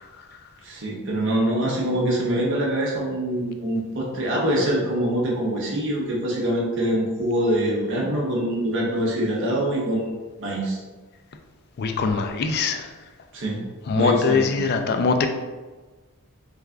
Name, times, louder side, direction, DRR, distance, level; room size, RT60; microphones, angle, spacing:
voice 1, 0.6-10.8 13.3-13.6 14.0-14.5, right 1 dB, 55° right, -4 dB, 0.7 m, -24 dB
voice 2, 11.8-12.9 13.9-15.3, left 4 dB, 45° left, 5 dB, 0.3 m, -22 dB
3.3 x 2.4 x 3.4 m, 1.3 s
head